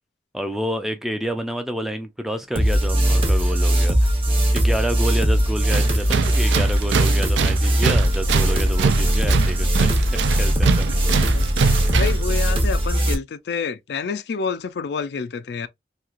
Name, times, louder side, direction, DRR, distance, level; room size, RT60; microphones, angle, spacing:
voice 1, 0.3-4.1 4.5-11.1, equal, ahead, 0.3 m, -29 dB
sound 1, 2.6-13.1, equal, 30° right, 0.8 m, -20 dB
Tools, 5.7-12.3, right 6 dB, 90° right, 0.4 m, -24 dB
voice 2, 11.3-15.7, left 5 dB, 75° left, 0.4 m, -29 dB
3.0 x 2.8 x 2.4 m
head